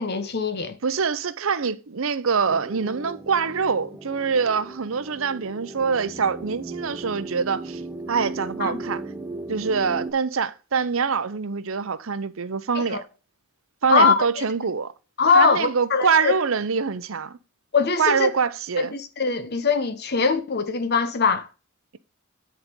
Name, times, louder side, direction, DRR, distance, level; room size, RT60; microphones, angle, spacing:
voice 1, 0.0-0.8 8.6-8.8 12.7-13.0 13.9-14.4 15.2-16.3 17.7-18.3 18.8-21.5, left 5 dB, 50° left, 1.0 m, -22 dB
voice 2, 0.8-7.8 8.1-9.0 9.5-13.0 13.8-14.9 15.3-17.4 18.0-18.9, right 5 dB, 70° right, 0.7 m, -24 dB
sound 1, 2.5-10.1, right 2 dB, 5° right, 1.1 m, -36 dB
9.8 x 4.2 x 5.2 m
head